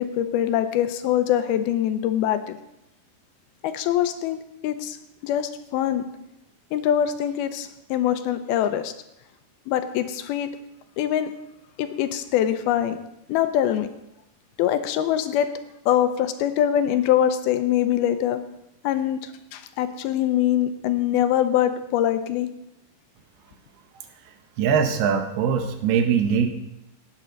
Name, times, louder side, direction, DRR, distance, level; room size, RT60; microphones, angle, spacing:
voice 1, 0.0-2.6 3.6-4.4 4.6-5.0 5.2-6.1 6.7-8.9 9.7-10.5 11.0-11.3 11.8-13.0 13.3-13.9 14.6-15.5 15.9-18.4 18.8-22.5, left 11 dB, 85° left, 10 dB, 2.6 m, -23 dB
voice 2, 24.6-26.5, right 7 dB, 85° right, 7 dB, 3.1 m, -21 dB
17.5 x 8.8 x 3.9 m, 0.85 s
omnidirectional pair, 4.4 m